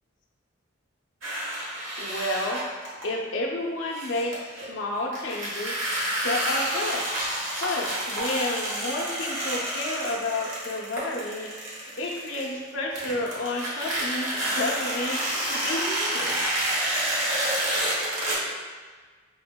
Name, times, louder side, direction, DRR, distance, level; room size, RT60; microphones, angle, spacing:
sound 1, 1.2-3.0 3.9-4.7 5.1-12.7 12.9-18.3, right 1 dB, 80° right, 1.1 m, -29 dB
voice 1, 2.0-4.4 4.6-5.7 6.2-7.0 7.6-11.5 12.0-15.2 15.5-16.4, left 2 dB, 70° left, -1 dB, 0.6 m, -30 dB
5.1 x 2.7 x 2.2 m, 1.5 s
head